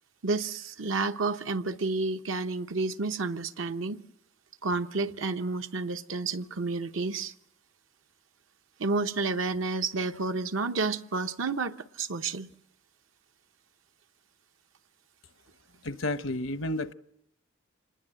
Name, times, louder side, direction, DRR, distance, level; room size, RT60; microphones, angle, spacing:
voice 1, 0.2-4.0 4.6-7.3 8.8-12.5, right 3 dB, 75° right, 0.9 m, -30 dB
voice 2, 15.8-16.9, left 1 dB, 75° left, 0.8 m, -31 dB
26.0 x 20.5 x 7.6 m
head